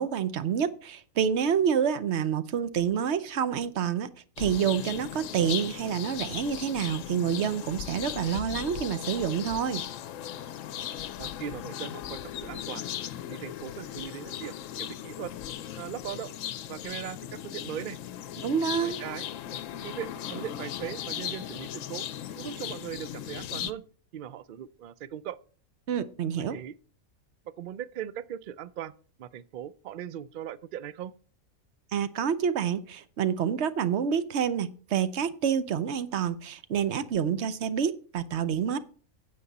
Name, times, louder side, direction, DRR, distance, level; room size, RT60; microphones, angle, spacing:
voice 1, 0.0-4.1 4.4-9.8 18.4-19.0 25.9-26.6 31.9-38.8, right 8 dB, 60° right, 0.9 m, -28 dB
sound 1, 4.4-23.7, left 10 dB, 70° left, 0.9 m, -37 dB
voice 2, 11.2-12.8 13.3-15.3 15.8-16.3 16.7-18.0 18.8-19.2 19.8-22.0 22.4-23.8 24.1-25.4 26.4-26.8 27.5-28.9 29.2-31.1, right 10 dB, 90° right, 0.4 m, -39 dB
9.6 x 7.8 x 4.1 m
omnidirectional pair, 1.5 m